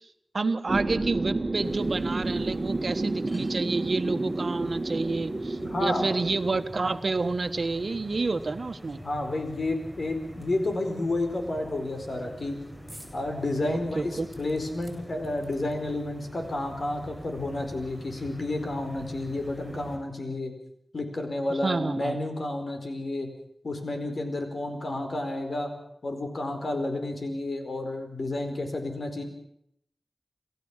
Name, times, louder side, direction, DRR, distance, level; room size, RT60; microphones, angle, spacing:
voice 1, 0.3-9.0 13.6-14.3 21.6-22.2, right 3 dB, 70° right, 9 dB, 1.3 m, -29 dB
sound 1, 0.7-6.6, right 2 dB, 45° right, 1.6 m, -30 dB
sound 2, 1.6-20.0, equal, 25° left, 6.4 m, -45 dB
voice 2, 5.6-6.1 9.0-12.6 13.1-20.5 20.9-23.3 23.6-25.7 26.0-29.2, left 2 dB, 75° left, 5 dB, 4.7 m, -31 dB
sound 3, 12.9-13.2 13.6-13.7 14.3-16.0 16.9-17.0 17.2-17.3, right 1 dB, 10° right, 7.2 m, -51 dB
28.0 x 14.5 x 7.4 m, 0.74 s
wide cardioid pair, 55°, 0 cm